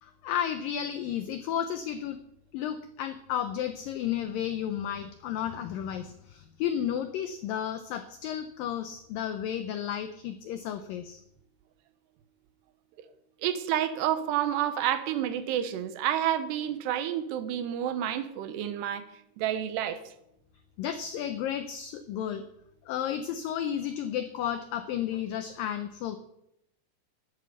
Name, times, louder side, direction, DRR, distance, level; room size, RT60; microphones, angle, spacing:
voice 1, 0.0-2.2 2.5-11.2 20.8-22.4 22.9-26.2, left 9 dB, 90° left, 10 dB, 1.9 m, -32 dB
voice 2, 13.4-19.0 19.4-20.0, right 11 dB, 80° right, 11 dB, 3.0 m, -29 dB
12.0 x 11.0 x 7.0 m, 0.81 s
omnidirectional pair, 5.0 m